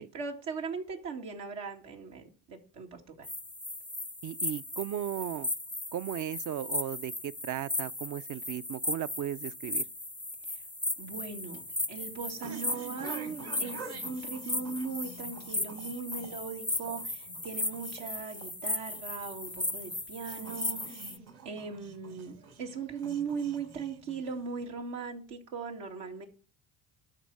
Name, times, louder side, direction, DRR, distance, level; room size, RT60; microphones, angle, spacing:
voice 1, 0.0-3.3 10.5-10.6 11.0-11.6 11.9-21.1 21.4-26.2, right 5 dB, 85° right, 2.2 m, -39 dB
sound 1, 3.2-21.2, left 2 dB, 5° left, 0.4 m, -36 dB
voice 2, 4.2-5.5 5.9-9.8, right 11 dB, 45° right, 0.5 m, -36 dB
sound 2, 11.1-24.6, right 4 dB, 60° right, 2.9 m, -48 dB
12.5 x 4.5 x 7.5 m
supercardioid pair, 65°, 43 cm